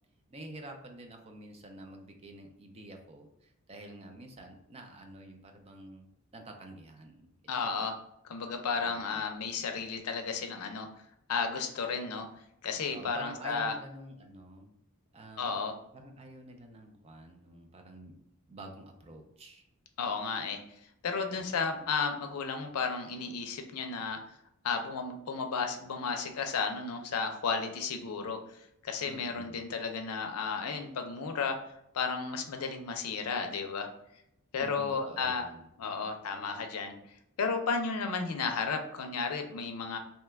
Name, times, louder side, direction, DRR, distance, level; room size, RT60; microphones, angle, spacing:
voice 1, 0.3-7.3 7.5-7.7 8.8-9.2 12.9-14.7 15.1-15.5 15.9-18.2 18.5-19.7 21.3-21.8 29.0-29.7 34.6-35.7, right 1 dB, 30° right, 3 dB, 0.4 m, -48 dB
voice 2, 7.5-8.0 8.3-10.9 11.3-12.3 12.6-13.7 15.4-15.7 20.0-20.6 21.0-24.2 24.6-28.4 28.8-31.6 31.9-33.9 34.5-35.5 35.8-36.9 37.4-40.0, left 5 dB, 85° left, 5 dB, 0.5 m, -33 dB
2.8 x 2.2 x 3.3 m, 0.77 s
head